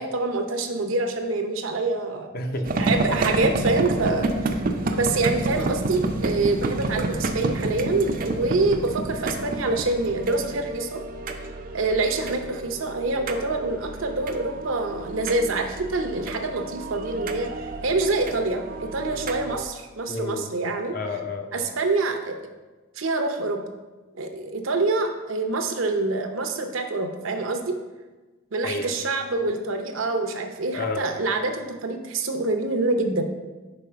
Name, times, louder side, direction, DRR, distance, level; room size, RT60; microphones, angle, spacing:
voice 1, 0.0-2.3 2.8-4.3 4.9-11.0 11.7-17.5 17.8-20.9 21.5-22.5 23.0-23.6 24.1-27.8 28.5-33.3, right 2 dB, 75° right, 5 dB, 0.7 m, -26 dB
voice 2, 2.3-2.9 20.1-20.5 20.9-21.7 28.6-28.9 30.7-31.0, left 2 dB, 45° left, 5 dB, 0.6 m, -30 dB
sound 1, 2.6-19.7, right 2 dB, 40° right, 0.4 m, -30 dB
5.2 x 4.3 x 5.6 m, 1.2 s
head